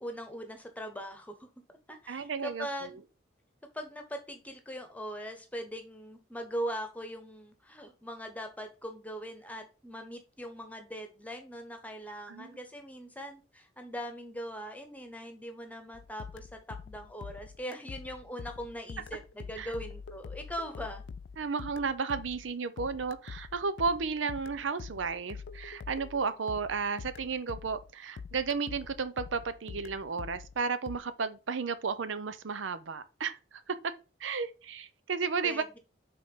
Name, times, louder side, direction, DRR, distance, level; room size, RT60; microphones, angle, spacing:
voice 1, 0.0-1.5 1.9-3.0 3.7-21.0 35.4-35.8, equal, 10° left, 1.1 m, -41 dB
voice 2, 2.1-2.9 12.3-12.5 19.6-19.7 21.4-33.9 34.2-35.6, right 5 dB, 75° right, 0.6 m, -33 dB
sound 1, 15.9-27.9 28.2-31.0, left 5 dB, 65° left, 0.4 m, -45 dB
5.7 x 3.8 x 5.5 m
head